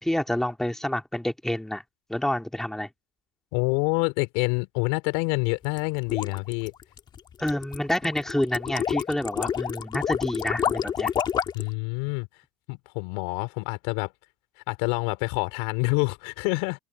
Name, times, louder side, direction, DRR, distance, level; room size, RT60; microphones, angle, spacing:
voice 1, 0.0-1.8 2.1-2.9 7.4-11.1, left 1 dB, 5° left, 3.0 m, -28 dB
voice 2, 3.5-6.7 11.5-12.3 12.7-14.1 14.7-16.8, left 31 dB, 70° left, 4.4 m, -27 dB
sound 1, 5.6-11.7, left 8 dB, 35° left, 1.8 m, -29 dB
hypercardioid pair, 90°, 13 cm